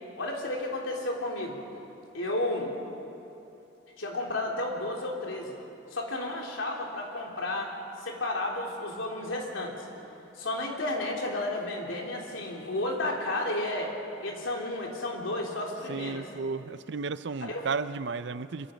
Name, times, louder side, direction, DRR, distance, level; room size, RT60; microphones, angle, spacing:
voice 1, 0.1-1.6 2.1-2.7 4.0-5.5 5.9-7.7 8.0-9.7 10.4-13.9 14.2-16.2 17.4-17.7, left 1 dB, 80° left, -1 dB, 3.5 m, -32 dB
voice 2, 15.9-18.7, right 4 dB, 60° right, 14 dB, 0.6 m, -33 dB
25.0 x 23.5 x 5.2 m, 2.9 s
head